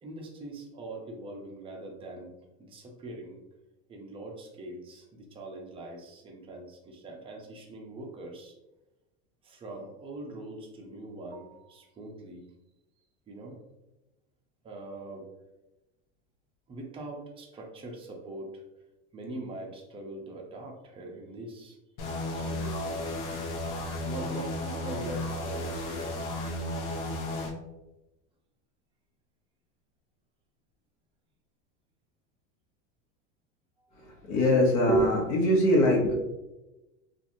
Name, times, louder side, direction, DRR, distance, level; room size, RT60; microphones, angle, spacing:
voice 1, 0.0-2.3 2.6-3.4 3.9-8.6 9.4-12.5 13.3-13.6 14.6-15.3 16.7-18.6 19.1-21.8 22.3-23.0 24.1-26.2 33.8-34.0, right 1 dB, 15° right, 0 dB, 0.5 m, -42 dB
sound 1, 22.0-27.5, left 1 dB, 80° left, 0.8 m, -34 dB
voice 2, 33.9-36.1, left 1 dB, 55° left, -2 dB, 1.0 m, -23 dB
2.9 x 2.5 x 2.6 m, 1.0 s
supercardioid pair, 130°, 34 cm